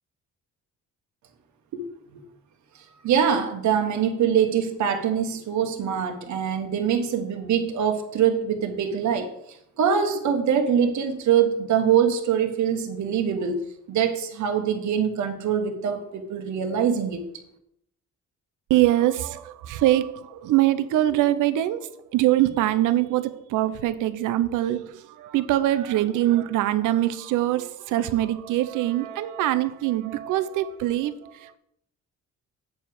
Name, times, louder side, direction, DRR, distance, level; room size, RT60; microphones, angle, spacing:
voice 1, 3.0-9.3 9.8-13.6 13.9-17.2, right 8 dB, 70° right, 1.3 m, -23 dB
voice 2, 18.7-31.6, right 14 dB, 90° right, 0.7 m, -23 dB
7.7 x 4.8 x 7.0 m
cardioid pair, 90°, 30 cm